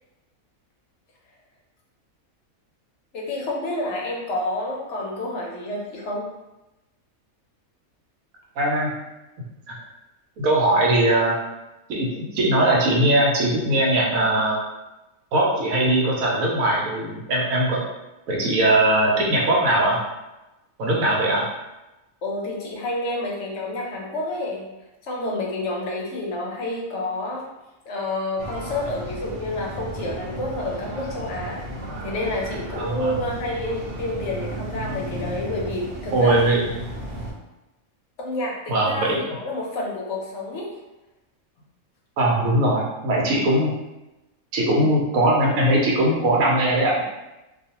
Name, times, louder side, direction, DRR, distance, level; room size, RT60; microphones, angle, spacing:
voice 1, 3.1-6.3 22.2-24.7 25.0-27.5 27.9-31.6 32.0-36.6 38.2-40.7, left 1 dB, 65° left, -2 dB, 0.9 m, -29 dB
voice 2, 8.6-8.9 10.4-11.4 11.9-14.6 15.3-17.8 18.3-20.0 20.8-21.5 32.8-33.1 36.1-36.7 38.7-39.2 42.2-43.7 44.5-47.0, right 1 dB, 80° right, -2 dB, 1.1 m, -20 dB
sound 1, 28.4-37.3, right 1 dB, 55° right, 0.6 m, -34 dB
2.5 x 2.3 x 2.8 m, 1.0 s
omnidirectional pair, 1.5 m